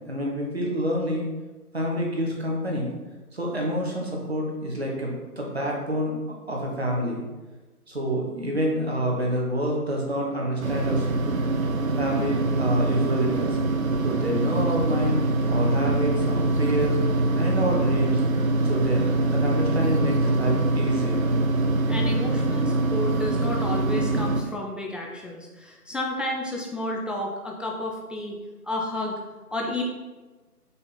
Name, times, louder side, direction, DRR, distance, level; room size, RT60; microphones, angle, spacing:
voice 1, 0.1-1.3 1.7-2.9 3.3-7.2 7.9-11.1 12.0-13.6 14.0-15.2 15.5-17.0 17.3-18.2 18.6-21.2, equal, 45° right, -2 dB, 0.9 m, -27 dB
sound 1, 10.6-24.4, right 2 dB, 60° right, 0.6 m, -24 dB
voice 2, 21.9-28.4 28.6-29.2 29.5-29.8, left 1 dB, ahead, -1 dB, 0.4 m, -31 dB
5.3 x 2.1 x 4.0 m, 1.2 s
figure-of-eight pair, 175°, 47 cm